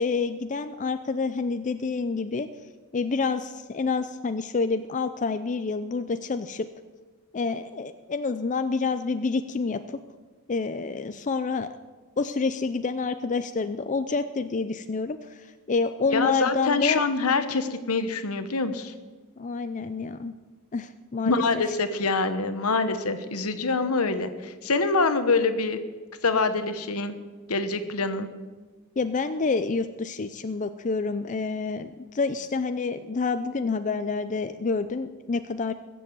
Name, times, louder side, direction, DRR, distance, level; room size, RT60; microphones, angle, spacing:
voice 1, 0.0-2.5 2.9-6.7 7.3-10.0 10.5-11.7 12.2-17.0 19.4-20.3 20.7-21.6 29.0-35.7, left 4 dB, 35° left, 10 dB, 0.5 m, -28 dB
voice 2, 16.1-18.9 21.2-25.8 26.2-27.1 27.5-28.3, left 3 dB, 75° left, 10 dB, 1.2 m, -25 dB
21.5 x 7.7 x 7.7 m, 1.3 s
head